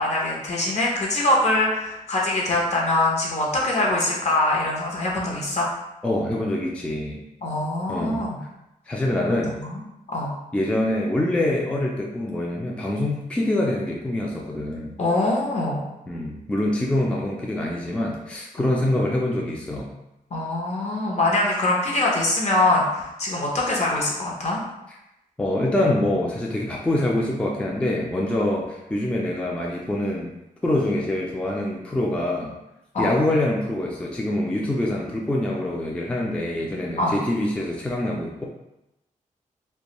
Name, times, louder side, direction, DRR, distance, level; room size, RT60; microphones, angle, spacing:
voice 1, 0.0-5.7 7.4-8.4 9.5-9.8 10.1-10.3 15.0-15.8 20.3-24.6 32.9-33.1 37.0-37.2, left 2 dB, 55° left, -3 dB, 0.7 m, -23 dB
voice 2, 6.0-7.2 7.9-8.2 8.9-9.5 10.5-15.0 16.1-19.9 25.4-30.3 30.6-32.5 33.0-38.4, left 1 dB, 10° left, -2 dB, 0.3 m, -25 dB
2.5 x 2.2 x 2.9 m, 0.92 s
wide cardioid pair, 125°, 14 cm